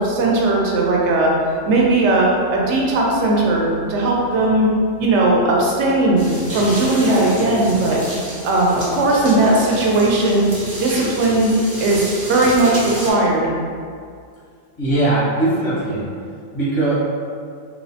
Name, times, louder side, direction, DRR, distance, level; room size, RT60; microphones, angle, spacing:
voice 1, 0.0-1.3 1.6-4.7 5.0-6.2 6.5-8.0 8.4-10.5 10.8-11.5 11.8-13.5, right 2 dB, 75° right, -2 dB, 0.9 m, -17 dB
sound 1, 6.2-13.1, right 1 dB, 45° right, 0.7 m, -30 dB
voice 2, 14.8-16.1 16.5-17.0, right 2 dB, 80° left, -9 dB, 1.3 m, -19 dB
3.0 x 2.0 x 2.6 m, 2.2 s
omnidirectional pair, 1.2 m